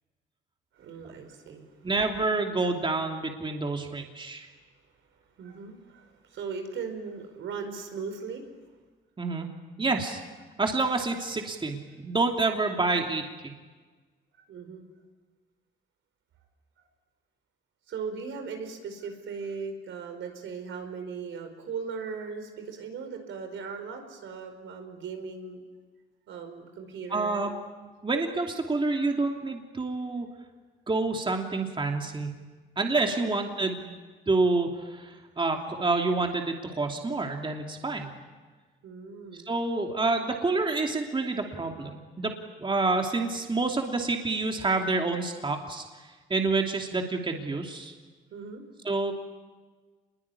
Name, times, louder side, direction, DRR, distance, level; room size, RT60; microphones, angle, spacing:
voice 1, 0.7-1.9 5.4-8.5 14.5-14.8 17.9-25.6 26.3-27.5 33.0-33.1 38.8-39.5 48.3-48.7, right 5 dB, 75° right, 6 dB, 4.9 m, -38 dB
voice 2, 1.8-4.5 9.2-9.5 9.8-10.2 10.6-13.5 27.1-27.5 28.0-30.3 30.9-32.3 32.8-33.9 34.3-38.1 39.5-42.3 42.6-45.8 46.3-47.9 48.8-49.1, right 3 dB, 25° right, 2 dB, 3.0 m, -28 dB
27.0 x 22.0 x 9.9 m, 1.4 s
cardioid pair, 90°, 20 cm